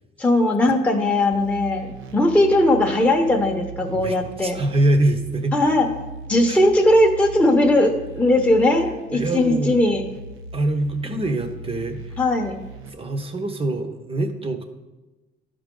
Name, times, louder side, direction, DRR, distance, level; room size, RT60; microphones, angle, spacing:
voice 1, 0.2-4.6 5.5-5.9 6.3-10.0 12.2-12.6, left 1 dB, 5° left, 0 dB, 0.9 m, -19 dB
sound 1, 1.3-12.9, right 2 dB, 75° right, 0.7 m, -38 dB
voice 2, 3.9-5.6 6.5-6.6 9.1-9.7 10.5-12.2 12.9-14.6, right 1 dB, 25° right, 7 dB, 0.9 m, -24 dB
11.5 x 5.0 x 3.7 m, 1.1 s
cardioid pair, 100°, 21 cm